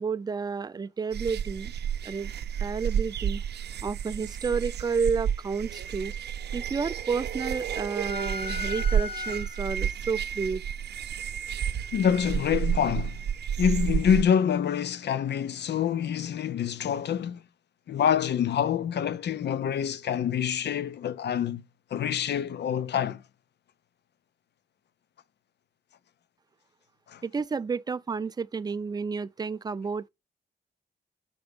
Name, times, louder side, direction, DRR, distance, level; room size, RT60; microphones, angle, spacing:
voice 1, 0.0-1.7 2.0-2.3 2.6-3.4 3.8-6.1 6.5-10.6 27.2-30.1, right 5 dB, 25° right, 0.3 m, -31 dB
sound 1, 1.1-14.2, right 8 dB, 80° right, 0.5 m, -31 dB
sound 2, 8.0-9.9, left 5 dB, 35° left, 0.5 m, -37 dB
voice 2, 11.9-13.2 13.6-17.4 17.9-21.6 21.9-23.2 27.1-27.2, left 8 dB, 85° left, 0.6 m, -26 dB
6.8 x 5.3 x 5.1 m
wide cardioid pair, 155°, 17 cm